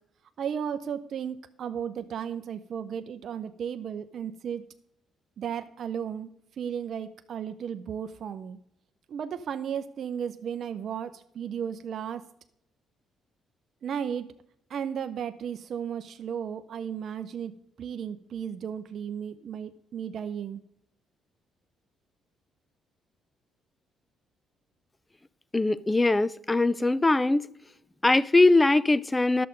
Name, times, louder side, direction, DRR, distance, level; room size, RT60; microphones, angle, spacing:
voice 1, 0.4-4.7 5.4-6.3 6.6-8.6 9.1-12.2 13.8-14.3 14.7-20.6, right 8 dB, 60° right, 0.5 m, -34 dB
voice 2, 25.5-27.5 28.0-29.5, left 2 dB, 15° left, 0.4 m, -21 dB
11.5 x 6.7 x 5.1 m
cardioid pair, 90°, 0 cm